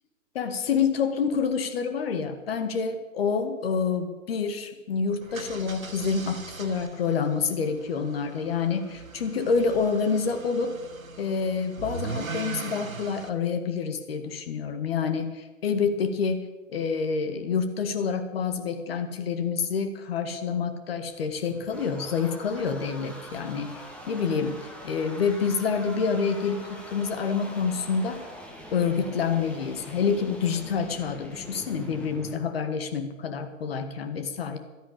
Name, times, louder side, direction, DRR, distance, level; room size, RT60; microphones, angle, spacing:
voice 1, 0.3-10.8 11.2-28.3 28.7-34.6, left 5 dB, 45° left, 9 dB, 2.0 m, -28 dB
sound 1, 5.2-13.3, right 4 dB, 85° right, 1.5 m, -40 dB
sound 2, 21.1-32.4, equal, 5° left, 1.6 m, -43 dB
13.0 x 10.5 x 8.9 m, 1.2 s
figure-of-eight pair, 125°, 40 cm